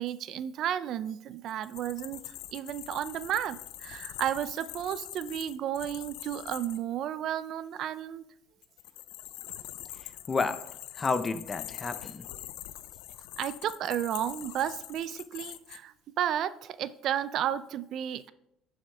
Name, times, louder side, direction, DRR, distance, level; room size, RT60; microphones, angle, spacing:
voice 1, 0.0-8.2 13.4-18.3, right 10 dB, 55° right, 15 dB, 0.4 m, -33 dB
sound 1, 1.5-6.8 8.6-15.8, left 15 dB, 85° left, 0.5 m, -44 dB
voice 2, 10.0-12.2, left 4 dB, 20° left, 11 dB, 0.6 m, -32 dB
11.0 x 6.4 x 3.4 m, 0.78 s
cardioid pair, 130°, 0 cm